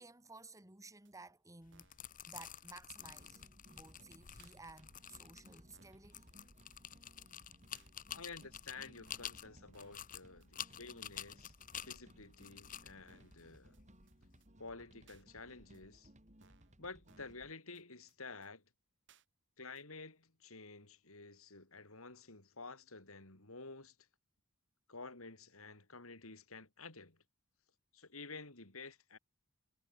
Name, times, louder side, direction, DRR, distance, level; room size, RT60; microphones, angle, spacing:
voice 1, 0.0-1.9 2.3-6.3, right 3 dB, 15° right, 2.2 m, -56 dB
sound 1, 1.0-1.1 1.7-2.0 2.4-2.7 3.1-3.2 3.4-3.5 3.7-3.8 4.4-4.6 5.1-5.2 5.7-6.0 6.4-6.5 6.7-6.8 7.1-7.2 7.7-7.9 8.4-8.5 9.1-9.4 9.7-10.1 10.4-10.5 10.7-10.8 11.1-11.2 11.7-11.9 12.4-12.5 13.1-13.4 13.7-13.8 14.1-14.2 14.4-14.5 15.1-15.2 15.7-15.8 16.4-16.7 17.1-17.4 17.7-17.8 18.1-18.2 18.4-18.5 19.1-19.2 19.7-19.8, right 6 dB, 60° right, 4.5 m, -69 dB
sound 2, 1.6-14.4, left 10 dB, 40° left, 0.9 m, -50 dB
sound 3, 3.0-17.5, equal, 35° right, 6.5 m, -63 dB
voice 2, 8.1-13.8 14.6-16.1 16.8-18.6 19.6-23.9 24.9-27.2 27.9-29.2, left 3 dB, 70° left, 4.7 m, -51 dB
head